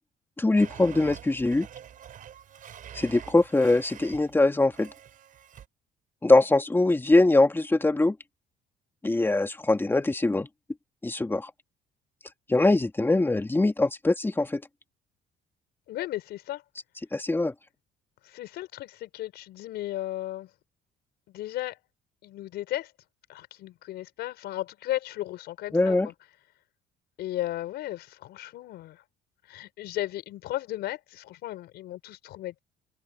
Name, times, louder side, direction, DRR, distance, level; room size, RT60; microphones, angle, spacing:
voice 1, 0.4-1.7 2.9-4.9 6.2-8.2 9.0-10.5 11.0-11.5 12.5-14.6 17.1-17.5 25.7-26.1, left 2 dB, 15° left, 2.3 m, -22 dB
Domestic sounds home sounds, 0.6-4.4 4.7-5.7, right 9 dB, 55° right, 5.3 m, -46 dB
voice 2, 15.9-16.6 18.2-20.5 21.3-21.8 22.2-22.9 23.3-26.1 27.2-29.0 29.5-32.6, left 14 dB, 75° left, 5.2 m, -35 dB
cardioid pair, 110°, 17 cm